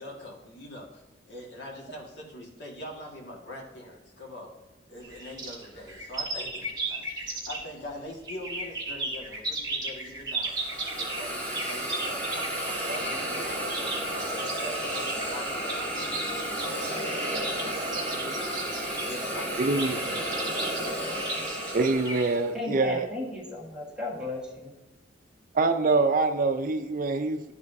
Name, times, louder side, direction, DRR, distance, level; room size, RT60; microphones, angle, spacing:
voice 1, 0.0-4.5 4.9-7.0 7.5-13.9 14.3-20.6, left 1 dB, 65° left, 1.7 m, -44 dB
sound 1, 5.0-7.8 8.2-22.2, right 2 dB, 25° right, 2.3 m, -35 dB
Hiss, 10.4-22.5, right 1 dB, 10° left, 1.7 m, -32 dB
voice 2, 19.6-20.4 21.7-23.1 25.5-27.5, right 3 dB, 45° right, 0.4 m, -25 dB
voice 3, 22.5-24.8, left 2 dB, 5° right, 1.6 m, -35 dB
12.0 x 5.5 x 2.6 m
head